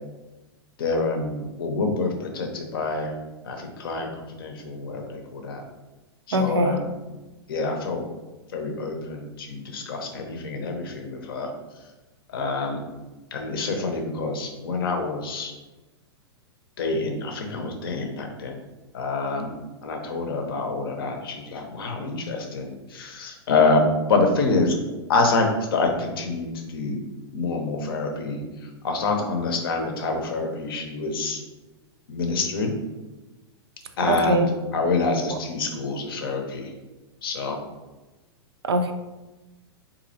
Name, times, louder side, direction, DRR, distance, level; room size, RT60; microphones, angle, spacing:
voice 1, 0.8-3.2 3.4-5.6 6.3-7.0 7.5-8.0 8.5-11.5 12.3-12.9 13.3-15.5 16.8-18.6 18.9-19.5 19.8-24.8 25.1-27.0 27.3-31.4 32.1-32.7 34.0-34.5 34.7-36.7 37.2-37.6, left 3 dB, 60° left, 3 dB, 0.6 m, -26 dB
voice 2, 6.3-6.8 34.1-34.5 35.3-35.4 38.6-38.9, right 1 dB, 70° right, 7 dB, 0.4 m, -22 dB
3.9 x 2.7 x 2.6 m, 1.1 s
figure-of-eight pair, 100°, 14 cm